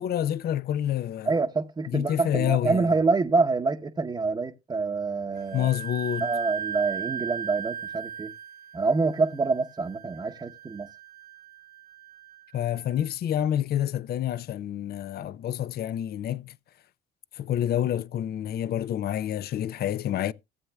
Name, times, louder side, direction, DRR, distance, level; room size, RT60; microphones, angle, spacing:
voice 1, 0.0-1.3 1.9-2.8 5.5-6.3 12.5-16.5 17.3-20.3, left 11 dB, 50° left, 0.5 m, -28 dB
voice 2, 1.2-5.7 6.2-8.3 8.7-10.9, right 4 dB, 20° right, 0.9 m, -26 dB
Wind instrument woodwind instrument, 5.4-12.8, right 7 dB, 45° right, 1.1 m, -38 dB
18.0 x 7.9 x 2.3 m
supercardioid pair, 75°, 21 cm